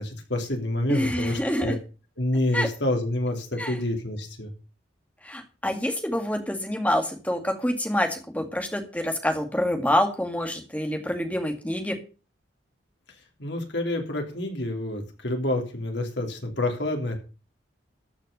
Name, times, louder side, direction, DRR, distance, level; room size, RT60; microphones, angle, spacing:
voice 1, 0.0-1.8 2.2-4.5 13.4-17.2, left 1 dB, 70° left, 4 dB, 3.2 m, -28 dB
voice 2, 0.9-1.7 2.5-2.7 3.6-3.8 5.2-12.0, left 1 dB, 10° left, 5 dB, 2.2 m, -27 dB
13.5 x 6.2 x 6.7 m, 0.34 s
head